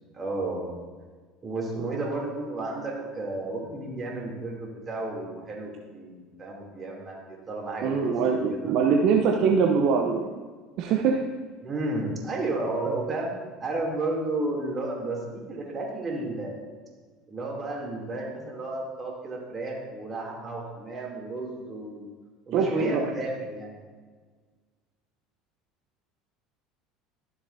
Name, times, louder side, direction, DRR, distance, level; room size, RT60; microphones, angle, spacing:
voice 1, 0.1-0.7 1.4-8.1 8.5-8.8 11.6-13.3 13.6-16.6 17.3-22.1 22.5-23.7, right 2 dB, 30° right, -2 dB, 2.9 m, -32 dB
voice 2, 7.8-10.3 10.8-11.2 22.5-23.0, right 6 dB, 60° right, 1 dB, 0.7 m, -23 dB
13.5 x 7.1 x 2.7 m, 1.5 s
hypercardioid pair, 70°, 0 cm